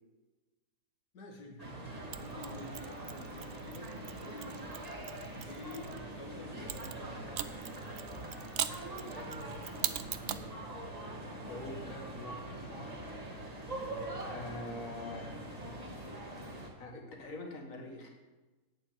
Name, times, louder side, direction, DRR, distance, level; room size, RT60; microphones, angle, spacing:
voice 1, 1.1-1.7 2.1-4.7 5.4-7.6 13.8-14.2, left 1 dB, 90° left, 1 dB, 2.1 m, -49 dB
sound 1, 1.6-16.7, right 1 dB, 25° right, 2.0 m, -43 dB
Mechanisms, 2.1-6.0 6.7-10.5, right 10 dB, 65° right, 0.8 m, -41 dB
voice 2, 11.5-13.3 14.2-15.3 16.8-18.1, left 2 dB, 60° left, 1 dB, 2.1 m, -45 dB
8.5 x 7.5 x 8.9 m, 1.2 s
omnidirectional pair, 1.6 m